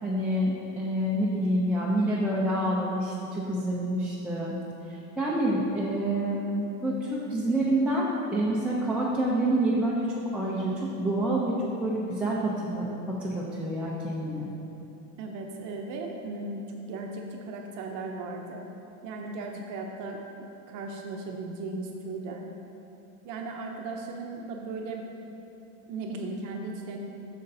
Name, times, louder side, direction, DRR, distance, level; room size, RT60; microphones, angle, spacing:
voice 1, 0.0-4.6 4.9-14.5, right 1 dB, 5° right, -8 dB, 0.4 m, -28 dB
voice 2, 15.2-18.6 19.0-22.5 23.2-25.1 25.9-27.0, right 3 dB, 50° right, 1 dB, 0.7 m, -37 dB
9.2 x 6.7 x 2.6 m, 2.9 s
supercardioid pair, 140°, 41 cm